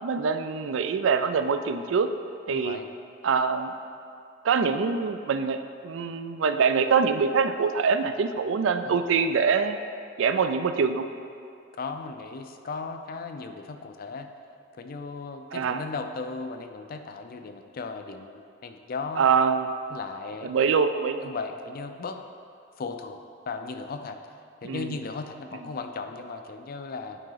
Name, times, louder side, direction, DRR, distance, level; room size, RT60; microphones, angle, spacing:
voice 1, 0.0-2.1 2.5-2.8 3.2-3.7 4.4-5.6 5.8-9.8 10.2-11.1 15.5-15.8 19.2-19.7 20.4-21.3 24.6-25.0, right 5 dB, 75° right, 9 dB, 0.4 m, -24 dB
voice 2, 2.5-2.9 8.8-9.0 11.8-14.3 14.8-19.3 19.9-20.5 21.2-22.2 22.8-23.2 23.5-24.2 24.6-27.2, left 4 dB, 50° left, 7 dB, 0.4 m, -36 dB
9.1 x 4.8 x 3.9 m, 2.4 s
head